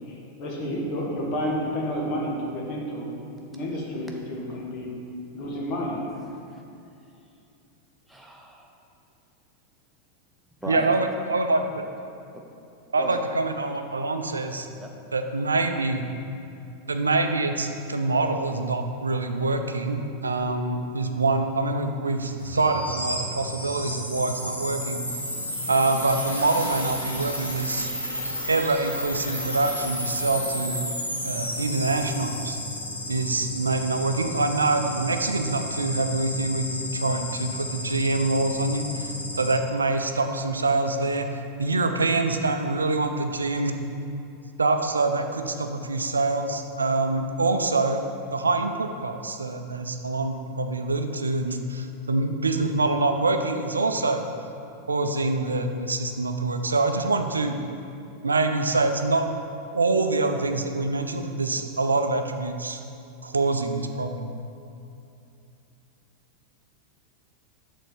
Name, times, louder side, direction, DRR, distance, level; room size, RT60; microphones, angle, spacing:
voice 1, 0.1-3.1 3.5-4.9 5.3-6.0, equal, 40° left, -2 dB, 1.5 m, -30 dB
voice 2, 8.1-8.7 10.6-11.0 13.0-13.2 14.8-14.9, right 1 dB, ahead, -1 dB, 0.9 m, -36 dB
voice 3, 10.7-11.8 12.9-14.7 15.1-16.0 16.9-25.0 25.7-27.9 28.5-30.9 31.2-32.6 33.1-39.1 39.4-41.3 41.6-43.7 44.6-48.1 48.3-54.2 54.9-57.5 58.2-59.2 59.7-62.8 63.2-64.3, right 3 dB, 75° right, 6 dB, 0.5 m, -25 dB
sound 1, 22.4-39.6, left 1 dB, 85° left, 1.1 m, -32 dB
6.5 x 4.1 x 6.3 m, 2.7 s
figure-of-eight pair, 90°, 0 cm